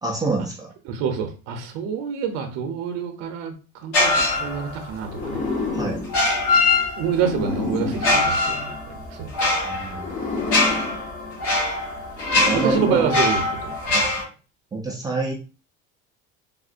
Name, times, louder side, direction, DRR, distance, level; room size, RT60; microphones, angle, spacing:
voice 1, 0.0-0.7 5.7-6.0 8.4-8.5 9.6-10.1 12.5-13.2 13.9-14.1 14.7-15.3, right 3 dB, 15° right, -1 dB, 0.3 m, -26 dB
voice 2, 0.9-5.4 7.0-9.5 12.5-14.1, right 7 dB, 65° right, 5 dB, 0.6 m, -27 dB
sound 1, 3.9-4.9 6.0-7.3 7.9-14.2, left 2 dB, 55° left, 1.2 m, -22 dB
sound 2, 5.0-9.2 9.9-13.8, left 3 dB, 25° left, 0.6 m, -30 dB
3.6 x 2.0 x 2.5 m, 0.34 s
cardioid pair, 150°, 29 cm